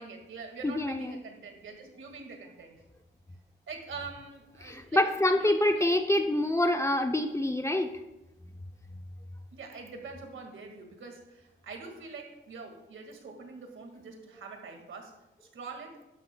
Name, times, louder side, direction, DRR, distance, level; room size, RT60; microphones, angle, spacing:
voice 1, 0.0-2.7 3.7-5.0 5.4-6.3 9.5-15.1 15.4-16.0, right 4 dB, 70° right, 3 dB, 1.8 m, -44 dB
voice 2, 0.6-1.2 4.6-7.9, left 1 dB, 15° left, 6 dB, 0.5 m, -26 dB
12.5 x 11.5 x 2.2 m, 0.96 s
wide cardioid pair, 155°, 21 cm